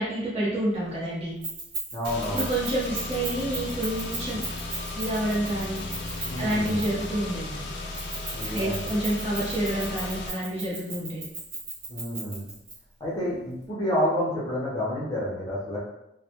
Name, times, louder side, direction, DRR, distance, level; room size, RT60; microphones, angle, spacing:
voice 1, 0.0-1.3 2.3-4.4 5.0-5.8 6.4-7.7 8.5-11.2, right 1 dB, 35° right, -7 dB, 0.8 m, -28 dB
Keys jangling, 1.4-7.1 7.9-12.7, right 3 dB, 75° right, 1.1 m, -36 dB
voice 2, 1.9-2.5 6.3-6.8 8.3-8.9 11.9-12.5 13.0-15.8, equal, 20° left, -7 dB, 0.6 m, -29 dB
Car / Engine, 2.0-10.3, left 2 dB, 65° left, 0.4 m, -35 dB
2.2 x 2.1 x 2.8 m, 0.87 s
head